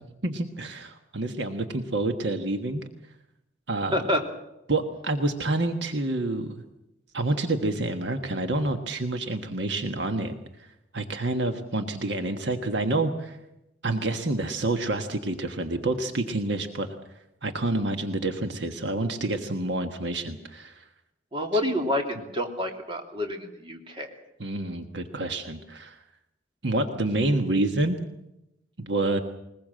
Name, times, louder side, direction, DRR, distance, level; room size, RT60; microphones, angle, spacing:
voice 1, 0.2-2.8 3.7-3.9 4.7-6.5 7.1-10.3 10.9-13.4 13.8-16.9 17.4-20.8 24.4-26.0 26.6-28.0 28.8-29.2, right 2 dB, 65° right, 6 dB, 1.5 m, -28 dB
voice 2, 3.9-4.2 21.3-24.1, left 1 dB, 30° right, 2 dB, 3.0 m, -28 dB
21.0 x 21.0 x 7.6 m, 0.89 s
head